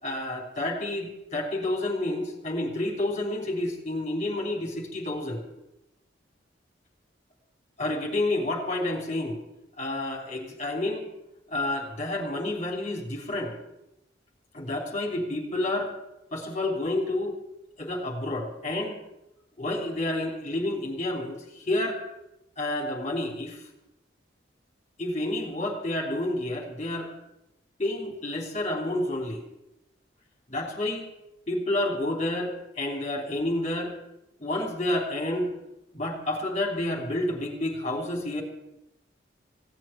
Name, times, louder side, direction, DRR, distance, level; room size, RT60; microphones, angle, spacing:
voice 1, 0.0-5.4 7.8-9.4 9.8-11.0 11.5-13.6 14.5-15.9 16.3-17.4 17.8-19.0 19.6-22.0 22.6-23.6 25.0-27.1 27.8-29.4 30.5-31.1 31.5-32.5 32.8-33.9 34.4-35.5 35.9-38.4, left 1 dB, 35° left, 1 dB, 3.5 m, -29 dB
16.5 x 7.7 x 9.1 m, 0.88 s
head